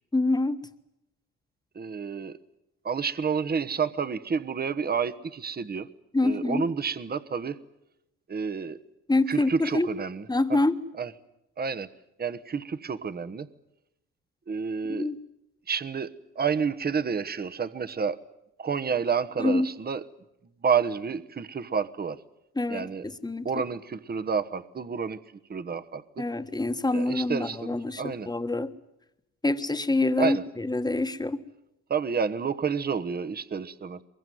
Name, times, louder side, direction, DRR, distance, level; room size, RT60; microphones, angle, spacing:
voice 1, 0.1-0.6 6.1-6.6 9.1-9.9 10.3-10.8 14.9-15.2 19.4-19.7 22.6-23.5 26.2-28.7 29.4-31.4, left 2 dB, 15° left, 9 dB, 1.5 m, -26 dB
voice 2, 1.7-2.4 2.8-5.9 6.2-7.6 8.3-8.8 9.3-10.6 11.0-11.1 11.6-11.9 12.2-13.5 14.5-15.1 15.7-18.2 18.6-20.0 20.6-22.2 22.7-23.1 23.4-25.2 25.5-26.2 26.9-28.3 30.2-30.4 31.9-34.0, right 6 dB, 30° right, 13 dB, 1.1 m, -29 dB
23.0 x 22.0 x 9.3 m, 0.88 s
cardioid pair, 90°, 30 cm